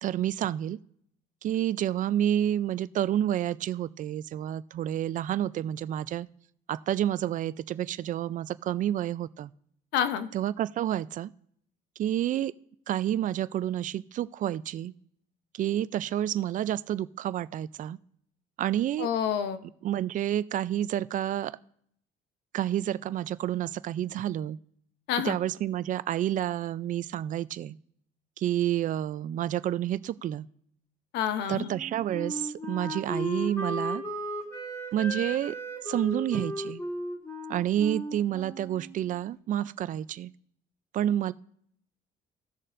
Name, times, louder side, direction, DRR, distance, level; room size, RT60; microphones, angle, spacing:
voice 1, 0.0-0.8 1.4-6.3 6.7-9.5 10.3-11.3 12.0-12.5 12.9-14.9 15.5-18.0 18.6-19.1 19.8-21.6 22.5-24.6 25.2-27.8 28.4-30.5 31.5-34.0 34.9-35.6 35.8-36.8 37.5-40.3 40.9-41.3, right 11 dB, 50° right, 17 dB, 0.4 m, -29 dB
voice 2, 9.9-10.3 19.0-19.6 25.1-25.4 31.1-31.7, left 8 dB, 85° left, 10 dB, 0.8 m, -28 dB
Wind instrument woodwind instrument, 31.6-39.2, equal, 15° left, 2.5 m, -35 dB
17.0 x 6.6 x 2.5 m, 0.66 s
cardioid pair, 110°, 17 cm